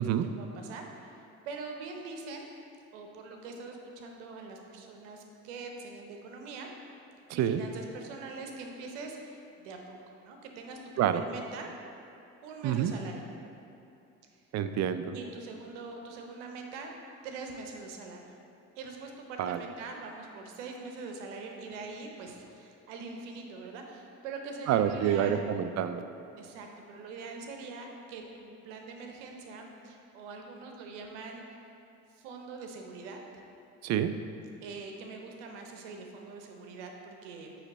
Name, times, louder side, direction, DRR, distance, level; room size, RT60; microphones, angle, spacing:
voice 1, 0.4-2.5 2.9-6.7 7.3-11.7 12.4-13.3 15.1-16.9 17.2-18.4 18.8-25.4 26.4-31.4 32.1-33.4 34.6-37.6, right 4 dB, 90° right, 2 dB, 0.7 m, -43 dB
voice 2, 14.5-15.1 19.4-19.6 24.7-26.0 33.8-34.1, right 10 dB, 50° right, 10 dB, 0.4 m, -27 dB
8.0 x 3.2 x 4.1 m, 2.6 s
supercardioid pair, 75°, 35 cm